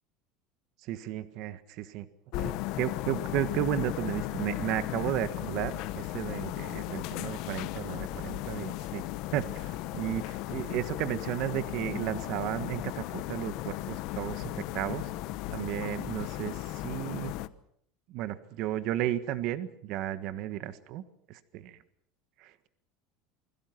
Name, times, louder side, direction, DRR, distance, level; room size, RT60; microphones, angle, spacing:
voice 1, 0.8-2.1 2.4-9.0 9.3-15.1 15.5-17.3 18.1-21.0 21.3-21.8 22.4-22.7, right 13 dB, 50° right, 12 dB, 1.5 m, -34 dB
sound 1, 2.3-17.5, left 16 dB, 50° left, 1.1 m, -36 dB
28.5 x 21.5 x 6.0 m, 0.68 s
cardioid pair, 165°, 0 cm